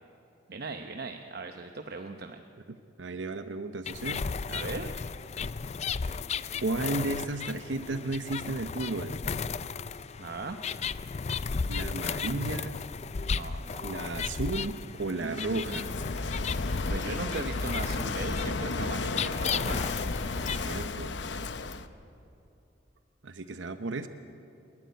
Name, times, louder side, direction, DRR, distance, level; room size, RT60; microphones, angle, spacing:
voice 1, 0.5-2.4 4.5-4.9 10.2-10.6 13.2-14.0 15.2-16.0 16.9-19.9, right 3 dB, 55° right, 5 dB, 0.9 m, -38 dB
voice 2, 2.7-4.3 6.6-9.2 11.7-12.9 13.8-15.9 20.4-21.1 23.2-24.1, right 2 dB, 85° right, 9 dB, 0.8 m, -34 dB
sound 1, 3.9-20.9, left 5 dB, 35° left, 0.4 m, -35 dB
Walk footsteps / Wind / Waves surf, 15.3-21.9, left 3 dB, 70° left, 0.9 m, -33 dB
28.5 x 12.0 x 9.5 m, 2.8 s
head